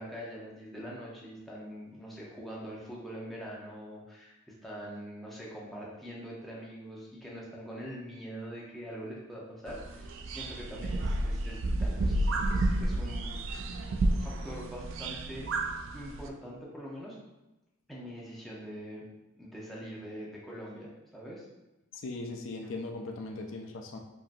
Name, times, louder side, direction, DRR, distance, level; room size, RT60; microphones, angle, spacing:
voice 1, 0.0-13.6 14.2-15.5 15.9-17.2 17.9-19.1 19.4-21.5, equal, ahead, -5 dB, 0.7 m, -43 dB
sound 1, 9.7-16.3, right 1 dB, 65° right, 0.4 m, -31 dB
voice 2, 21.9-24.0, left 2 dB, 70° left, 3 dB, 0.4 m, -39 dB
5.2 x 2.8 x 2.6 m, 1.0 s
head